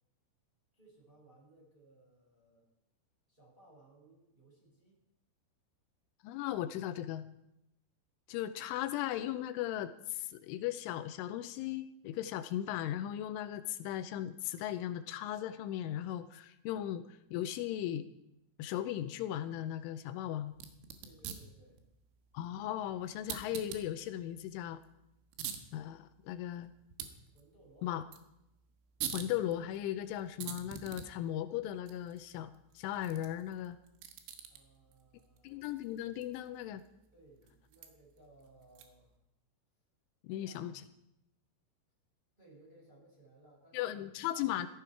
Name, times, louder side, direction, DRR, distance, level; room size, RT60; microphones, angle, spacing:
voice 1, 0.7-2.7 3.3-5.0 21.0-21.8 27.3-27.9 34.5-35.6 37.1-39.2 40.3-40.8 42.4-43.9 44.3-44.7, right 2 dB, 10° right, -4 dB, 5.6 m, -62 dB
voice 2, 6.2-7.2 8.3-18.1 18.6-20.5 22.3-24.8 25.7-26.7 27.8-28.0 29.1-33.8 35.4-36.8 40.2-40.7 43.7-44.7, left 12 dB, 80° left, 10 dB, 3.0 m, -37 dB
sound 1, 20.5-39.2, right 8 dB, 75° right, 3.7 m, -48 dB
16.0 x 14.5 x 4.7 m, 0.84 s
omnidirectional pair, 5.8 m